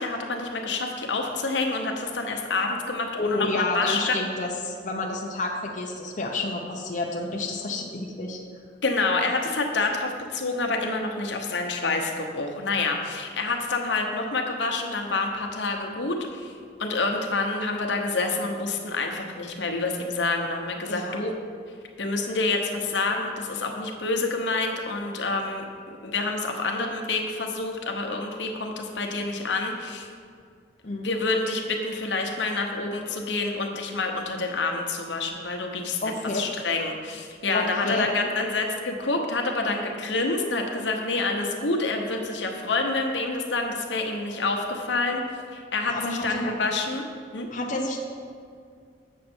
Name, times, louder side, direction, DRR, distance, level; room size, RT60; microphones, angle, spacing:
voice 1, 0.0-4.1 8.8-16.5 16.8-21.3 22.0-25.6 26.0-30.1 31.0-36.0 36.3-45.2 45.5-47.0 47.3-47.5, left 3 dB, 80° left, 2 dB, 1.0 m, -27 dB
voice 2, 3.2-8.4 20.9-21.2 30.8-31.1 36.0-36.5 37.5-38.1 45.9-46.5 47.5-48.0, left 2 dB, 45° left, -1 dB, 0.7 m, -29 dB
8.1 x 6.5 x 4.4 m, 2.2 s
head